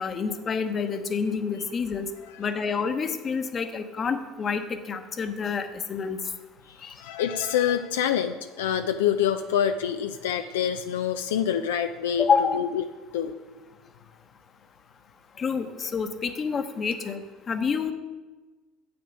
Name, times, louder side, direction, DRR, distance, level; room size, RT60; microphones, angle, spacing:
voice 1, 0.0-2.1 2.4-6.2 6.8-6.9 12.2-12.6 15.4-17.2 17.5-17.9, left 5 dB, 35° left, 8 dB, 0.9 m, -28 dB
voice 2, 6.7-12.8 13.1-13.3, left 9 dB, 85° left, 7 dB, 0.4 m, -26 dB
7.9 x 7.8 x 5.4 m, 1.3 s
hypercardioid pair, 75°, 0 cm